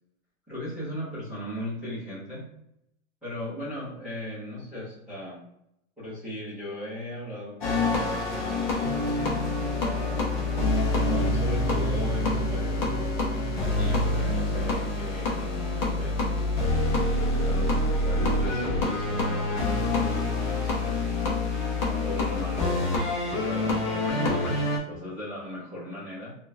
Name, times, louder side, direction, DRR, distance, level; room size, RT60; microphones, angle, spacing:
voice 1, 0.5-2.4 3.2-5.4 6.0-9.7 10.9-12.9 13.7-16.1 17.2-21.3 22.0-26.3, left 1 dB, ahead, -14 dB, 0.7 m, -38 dB
sound 1, 7.6-24.8, left 2 dB, 35° left, 0.7 m, -26 dB
sound 2, 8.8-16.2, right 1 dB, 75° right, 0.9 m, -36 dB
3.6 x 2.4 x 2.7 m, 0.78 s
hypercardioid pair, 180°, 41 cm